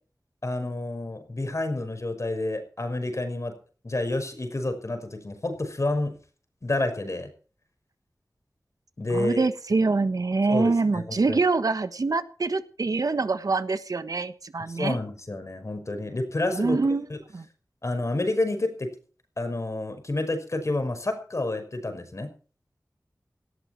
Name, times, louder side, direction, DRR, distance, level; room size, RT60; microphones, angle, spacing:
voice 1, 0.4-3.5 3.8-6.1 6.6-7.3 9.0-9.5 10.5-11.4 14.7-16.8 17.1-17.2 17.8-18.9 19.4-22.3, left 2 dB, 55° left, 7 dB, 5.6 m, -29 dB
voice 2, 9.1-15.0 16.5-17.1 17.3-17.4, right 3 dB, 80° right, 11 dB, 1.4 m, -25 dB
18.0 x 14.0 x 4.7 m, 0.40 s
wide cardioid pair, 45°, 6 cm